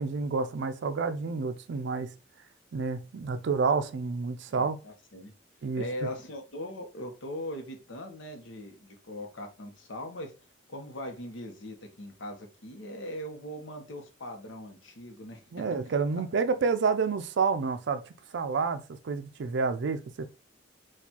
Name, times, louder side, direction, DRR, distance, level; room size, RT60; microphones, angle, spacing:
voice 1, 0.0-2.1 2.7-4.8 5.6-6.1 15.5-18.0 18.3-20.3, right 4 dB, 65° right, 0.4 m, -29 dB
voice 2, 4.5-5.3 5.8-10.3 10.7-15.7 16.1-16.2, left 1 dB, 75° left, 0.8 m, -40 dB
4.3 x 2.4 x 2.8 m
head